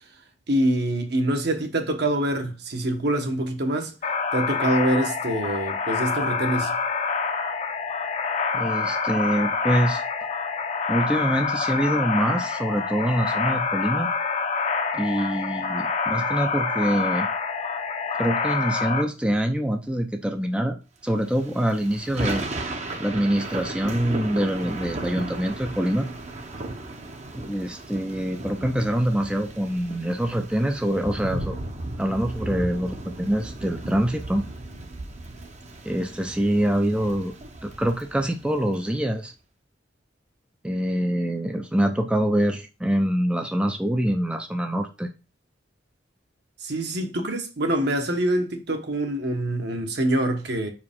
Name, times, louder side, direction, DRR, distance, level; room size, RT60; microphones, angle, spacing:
voice 1, 0.5-3.9 4.3-6.8 46.6-50.7, right 1 dB, 60° right, 1.2 m, -25 dB
sound 1, 4.0-19.0, left 4 dB, 35° left, 0.7 m, -27 dB
voice 2, 8.5-10.0 10.9-14.1 14.9-17.3 18.2-22.7 23.0-26.1 27.3-31.6 32.0-34.4 35.8-37.3 37.6-39.3 40.6-45.1, equal, 5° right, 0.5 m, -25 dB
Thunder / Rain, 21.3-38.8, right 2 dB, 35° right, 0.9 m, -35 dB
5.4 x 4.8 x 3.6 m
head